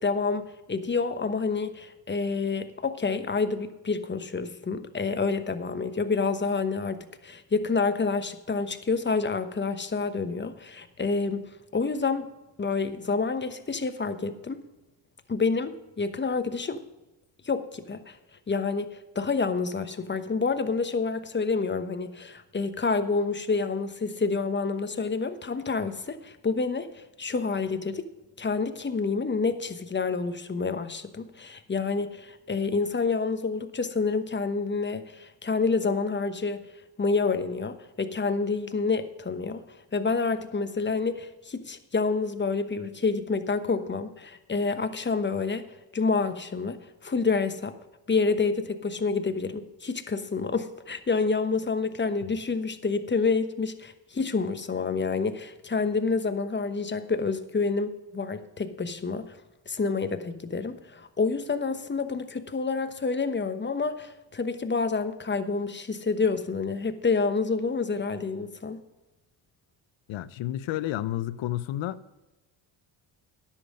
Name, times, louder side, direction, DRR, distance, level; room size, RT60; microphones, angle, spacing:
voice 1, 0.0-12.3 12.6-14.6 15.3-16.8 17.4-18.2 18.5-28.1 28.4-36.6 37.0-39.6 39.9-45.6 45.9-47.7 48.1-59.4 59.7-68.8, left 4 dB, 25° left, 1.0 m, -28 dB
voice 2, 70.1-72.0, left 14 dB, 70° left, 0.7 m, -31 dB
10.5 x 7.4 x 6.3 m
cardioid pair, 80°, 47 cm